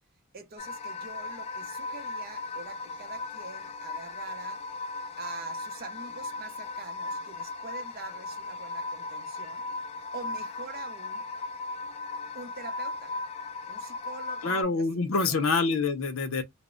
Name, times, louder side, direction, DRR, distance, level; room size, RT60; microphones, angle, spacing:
voice 1, 0.3-4.6 5.2-9.6 10.1-11.2 12.3-13.2 13.7-15.6, right 3 dB, 45° right, 0.6 m, -44 dB
sound 1, 0.6-14.6, left 3 dB, 30° left, 0.3 m, -37 dB
voice 2, 14.4-16.4, left 4 dB, 75° left, 0.6 m, -26 dB
2.0 x 2.0 x 3.5 m
head